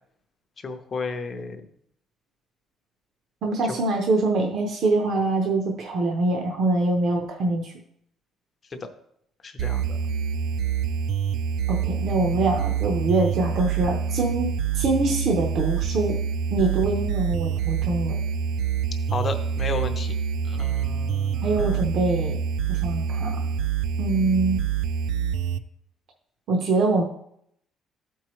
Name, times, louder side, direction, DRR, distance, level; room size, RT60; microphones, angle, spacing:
voice 1, 0.6-1.6 8.7-8.8 9.4-10.0 12.0-12.4 19.1-20.1 20.4-21.8, left 4 dB, 25° left, 6 dB, 0.7 m, -33 dB
voice 2, 3.4-7.7 11.7-14.5 14.7-16.2 16.5-18.1 21.4-22.4 22.7-23.4 24.0-24.6 26.5-27.0, right 2 dB, 50° right, 1 dB, 0.8 m, -24 dB
sound 1, 9.6-25.6, right 7 dB, 70° right, 0.4 m, -26 dB
12.5 x 4.6 x 3.1 m, 0.72 s
cardioid pair, 175°, 0 cm